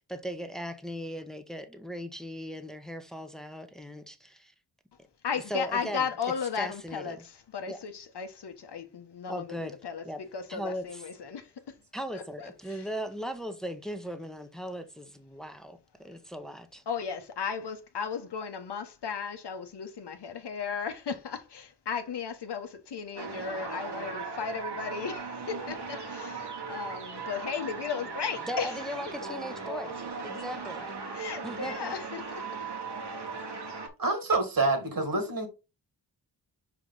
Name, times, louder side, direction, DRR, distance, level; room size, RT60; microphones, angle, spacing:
voice 1, 0.0-4.5 5.5-6.0 6.6-7.2 7.7-7.8 9.3-9.8 10.0-10.2 10.5-11.0 11.9-16.8 28.5-29.9 30.2-30.9 31.4-31.9, equal, ahead, 1.1 m, -38 dB
voice 2, 5.2-11.8 12.1-12.9 16.9-28.8 31.1-32.2, left 6 dB, 70° left, 1.2 m, -35 dB
sound 1, 23.2-33.9, right 4 dB, 70° right, 2.0 m, -38 dB
voice 3, 34.0-35.5, right 3 dB, 55° right, 2.2 m, -27 dB
5.0 x 4.9 x 3.9 m
cardioid pair, 55°, 42 cm